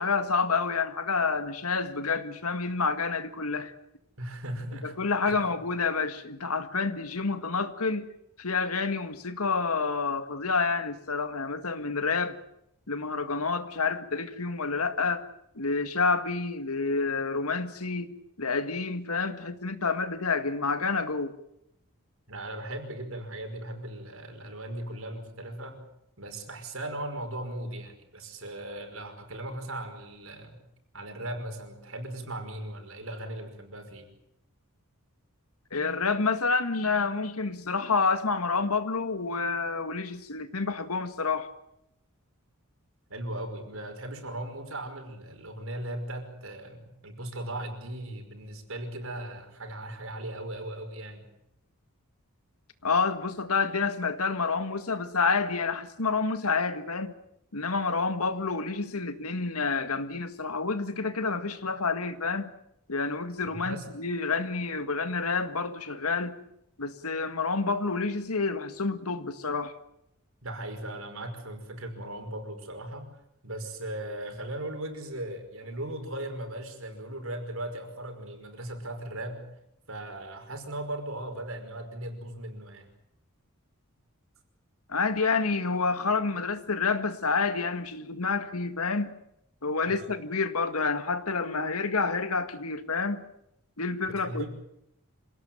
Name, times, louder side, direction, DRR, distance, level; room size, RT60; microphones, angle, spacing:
voice 1, 0.0-3.7 4.8-8.1 8.4-12.4 12.9-15.3 15.6-18.1 18.4-21.3 35.7-41.5 52.8-57.2 57.5-62.5 62.9-66.4 66.8-69.7 84.9-89.1 89.6-93.2 93.8-94.5, left 4 dB, 85° left, 1.9 m, -28 dB
voice 2, 4.2-5.0 5.3-5.4 22.3-25.8 26.2-30.6 30.9-34.1 43.1-51.3 63.4-63.8 70.4-73.1 73.4-79.4 79.9-82.8 89.9-90.1 94.0-94.5, right 1 dB, 65° right, 5.5 m, -38 dB
26.5 x 18.0 x 9.2 m
head